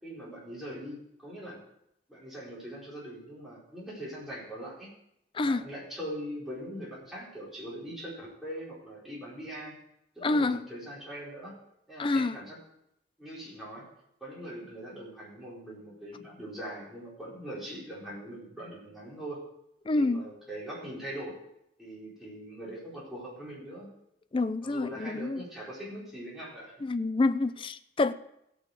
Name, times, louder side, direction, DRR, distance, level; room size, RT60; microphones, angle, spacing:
voice 1, 0.0-1.6 2.1-4.9 5.4-9.8 10.1-11.6 11.9-12.6 13.2-13.9 14.2-19.4 19.9-21.4 21.8-23.9 24.6-26.7, equal, ahead, 4.5 m, -41 dB
voice 2, 10.2-10.6 12.0-12.4 19.9-20.2 24.3-25.4 26.8-28.1, left 3 dB, 30° left, 0.4 m, -27 dB
16.5 x 6.4 x 4.9 m
head